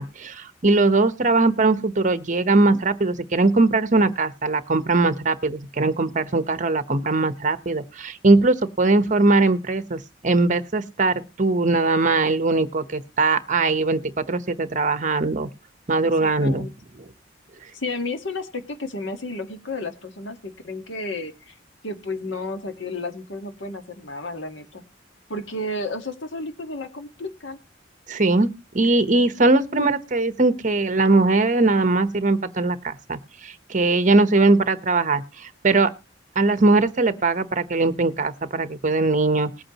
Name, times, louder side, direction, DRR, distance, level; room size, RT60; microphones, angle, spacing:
voice 1, 0.0-15.5 15.9-16.7 28.1-28.5 28.7-35.9 36.3-39.5, right 3 dB, 45° right, 13 dB, 1.0 m, -20 dB
voice 2, 16.0-16.7 17.7-21.6 21.8-24.8 25.3-27.6, left 2 dB, 85° left, 8 dB, 1.6 m, -32 dB
20.0 x 8.6 x 3.0 m, 0.28 s
head